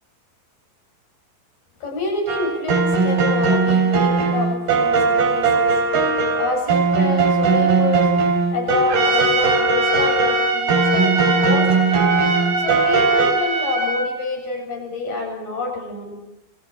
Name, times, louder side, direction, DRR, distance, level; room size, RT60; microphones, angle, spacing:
voice 1, 1.8-5.8 6.4-8.1 8.5-12.0 12.6-16.2, left 3 dB, 45° left, 2 dB, 9.4 m, -27 dB
sound 1, 2.3-13.3, right 4 dB, 55° right, 4.9 m, -19 dB
Trumpet, 8.9-14.1, right 3 dB, 75° right, 6.1 m, -22 dB
30.0 x 25.0 x 6.1 m, 0.82 s
omnidirectional pair, 5.4 m